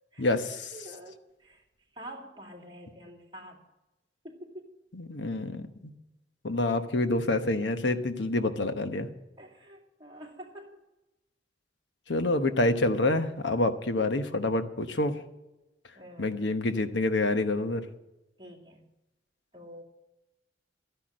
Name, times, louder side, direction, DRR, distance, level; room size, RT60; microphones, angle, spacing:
voice 1, 0.2-0.7 4.9-5.9 6.4-9.1 12.1-15.2 16.2-17.8, left 2 dB, 80° left, 9 dB, 1.1 m, -27 dB
voice 2, 0.7-1.6 1.9-3.6 4.2-4.8 6.7-6.9 9.4-10.8 15.9-16.5 18.4-18.9 19.5-19.8, right 1 dB, 25° right, -1 dB, 2.5 m, -47 dB
13.0 x 10.0 x 6.4 m, 0.97 s
head